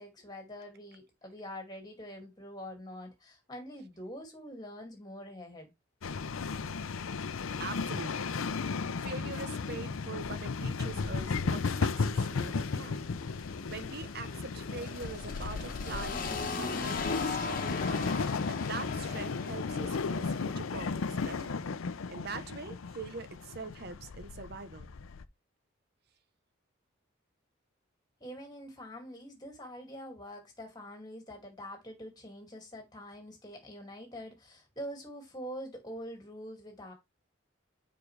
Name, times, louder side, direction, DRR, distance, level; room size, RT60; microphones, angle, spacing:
voice 1, 0.0-5.7 28.2-36.9, equal, 20° left, 2.4 m, -45 dB
sound 1, 6.0-25.3, left 4 dB, 90° left, 0.6 m, -35 dB
voice 2, 7.6-8.3 9.0-13.1 13.7-17.7 18.1-18.2 18.5-21.6 22.1-24.9, right 4 dB, 50° right, 0.8 m, -43 dB
sound 2, 11.5-21.1, left 4 dB, 45° left, 1.2 m, -40 dB
6.9 x 5.2 x 3.3 m
head